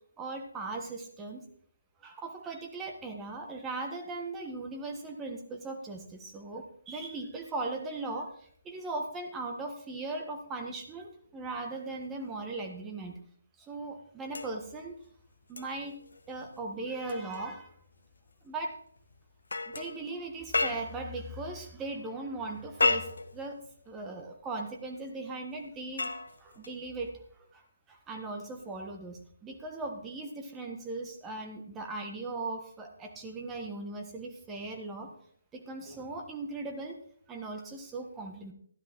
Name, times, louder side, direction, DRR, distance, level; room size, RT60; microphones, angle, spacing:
voice 1, 0.2-1.4 2.0-13.2 13.6-14.9 15.5-16.0 16.3-17.7 18.4-18.8 19.7-26.1 26.4-27.1 27.5-27.6 27.9-35.1 35.5-37.0 37.3-38.5, right 3 dB, 10° right, 3 dB, 1.6 m, -38 dB
sound 1, 14.3-21.2 22.5-24.1 25.5-27.1 28.6-28.8, left 3 dB, 75° left, 1.2 m, -35 dB
13.0 x 11.5 x 3.8 m, 0.63 s
figure-of-eight pair, 150°, 0 cm